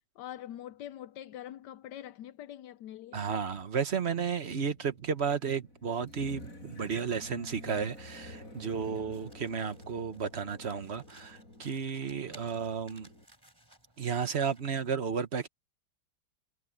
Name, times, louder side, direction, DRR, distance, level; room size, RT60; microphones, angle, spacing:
voice 1, 0.2-3.2, left 11 dB, 80° left, 1.2 m, -44 dB
voice 2, 3.1-13.1 14.0-15.5, right 6 dB, 40° right, 1.3 m, -33 dB
sound 1, 4.7-13.3, left 1 dB, 50° left, 8.1 m, -50 dB
Domestic sounds home sounds, 9.1-14.7, right 1 dB, 15° right, 4.4 m, -60 dB
omnidirectional pair, 1.8 m